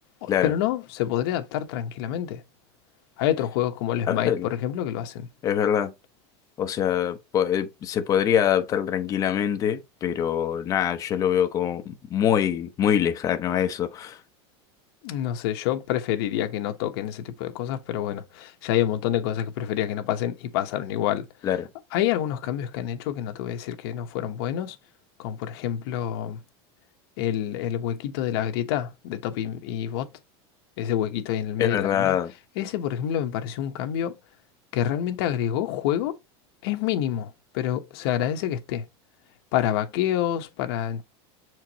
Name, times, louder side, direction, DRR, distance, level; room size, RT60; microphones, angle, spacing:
voice 1, 0.2-2.4 3.2-5.3 15.0-21.3 21.9-24.8 25.2-26.4 27.2-30.1 30.8-32.2 32.6-34.1 34.7-36.1 36.6-38.9 39.5-41.0, left 11 dB, 60° left, 1.1 m, -27 dB
voice 2, 4.1-4.5 5.4-5.9 6.6-14.2 21.4-21.7 31.6-32.3, left 9 dB, 25° left, 0.7 m, -24 dB
7.0 x 4.6 x 2.9 m
supercardioid pair, 170°, 14 cm